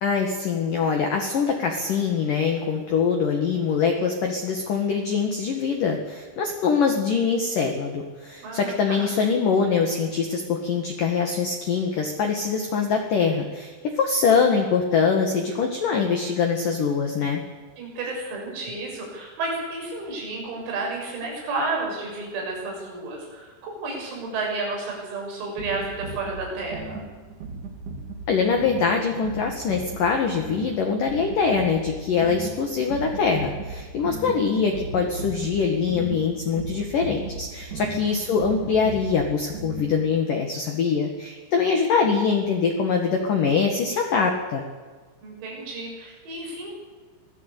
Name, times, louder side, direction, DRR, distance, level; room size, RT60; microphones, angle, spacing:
voice 1, 0.0-17.4 28.3-44.6, left 5 dB, 55° left, 3 dB, 2.7 m, -23 dB
voice 2, 8.4-9.1 17.8-27.1 37.7-38.2 45.2-46.7, right 3 dB, 90° right, -1 dB, 9.7 m, -32 dB
sound 1, 25.6-40.2, right 3 dB, 50° right, 2.7 m, -37 dB
25.0 x 17.5 x 8.4 m, 1.4 s
omnidirectional pair, 5.9 m